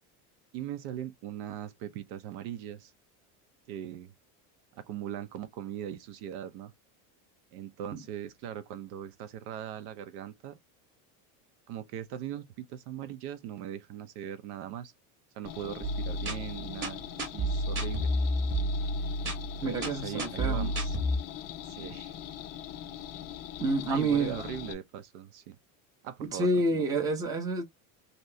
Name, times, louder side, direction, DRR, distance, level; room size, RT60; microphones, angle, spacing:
voice 1, 0.5-2.9 3.7-4.1 4.7-6.7 7.5-10.6 11.7-14.9 15.3-18.1 19.6-21.0 21.6-22.1 23.9-25.6 26.0-26.8, right 10 dB, 60° right, 0.7 m, -40 dB
sound 1, 15.4-24.7, left 11 dB, 35° left, 0.5 m, -42 dB
sound 2, 15.8-21.2, equal, 30° right, 1.0 m, -31 dB
voice 2, 19.6-20.7 23.6-24.4 26.2-27.6, right 2 dB, 10° right, 0.6 m, -28 dB
2.9 x 2.7 x 3.2 m
cardioid pair, 175°, 40 cm